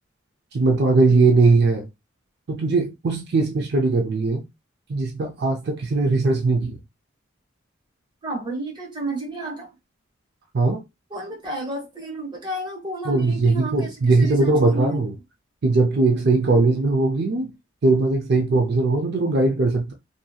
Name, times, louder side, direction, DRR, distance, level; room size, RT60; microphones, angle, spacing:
voice 1, 0.5-1.9 2.5-4.4 4.9-6.8 10.5-10.8 13.0-15.2 15.6-17.5 17.8-19.9, right 3 dB, 55° right, 0.4 m, -20 dB
voice 2, 8.2-9.7 11.1-13.9 14.2-15.0 16.4-16.6, right 1 dB, 20° right, 0.8 m, -31 dB
2.7 x 2.7 x 2.3 m
head